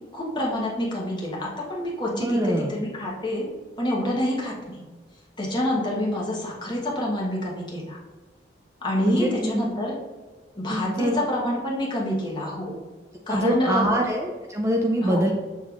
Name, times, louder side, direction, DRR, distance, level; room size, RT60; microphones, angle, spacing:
voice 1, 0.1-3.4 3.8-4.8 5.4-8.0 8.8-9.9 10.6-12.8 13.3-13.9 15.0-15.2, left 1 dB, 25° left, -4 dB, 1.1 m, -27 dB
voice 2, 2.1-2.7 9.0-9.7 10.7-11.2 13.3-15.3, right 1 dB, 15° right, 1 dB, 0.4 m, -24 dB
6.9 x 3.1 x 2.4 m, 1.3 s
head